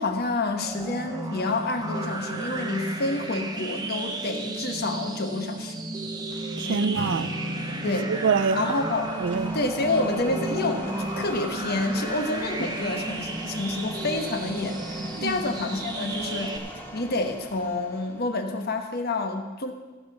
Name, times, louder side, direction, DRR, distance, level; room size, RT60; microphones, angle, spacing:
voice 1, 0.0-5.8 6.7-6.9 7.8-8.1 8.5-9.1 9.5-16.6 16.9-19.7, left 2 dB, 50° left, 1.2 m, -28 dB
sound 1, 0.6-16.6, right 2 dB, 20° right, 1.0 m, -33 dB
voice 2, 6.6-7.3 7.9-8.7 9.2-9.5 15.1-15.4, right 5 dB, 60° right, 0.4 m, -26 dB
Acoustic guitar / Strum, 6.9-11.7, equal, 70° left, 2.4 m, -40 dB
sound 2, 8.6-18.4, equal, 10° left, 1.1 m, -41 dB
15.5 x 8.0 x 6.0 m
head